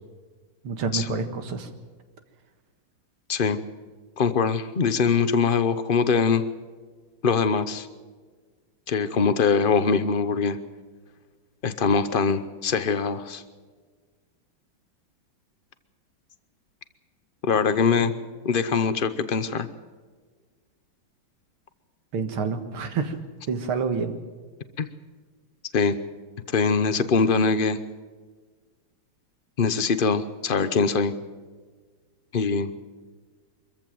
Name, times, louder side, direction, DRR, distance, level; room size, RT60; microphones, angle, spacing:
voice 1, 0.6-1.7 18.0-18.1 22.1-23.2 23.5-24.2, right 5 dB, 90° right, 8 dB, 2.6 m, -28 dB
voice 2, 4.2-6.4 7.2-7.9 8.9-10.6 11.6-13.4 17.4-18.1 18.4-19.7 24.8-24.9 25.7-26.0 26.5-27.8 29.6-31.1 32.3-32.7, left 5 dB, 70° left, 12 dB, 0.5 m, -22 dB
24.0 x 14.5 x 7.6 m, 1.5 s
omnidirectional pair, 2.3 m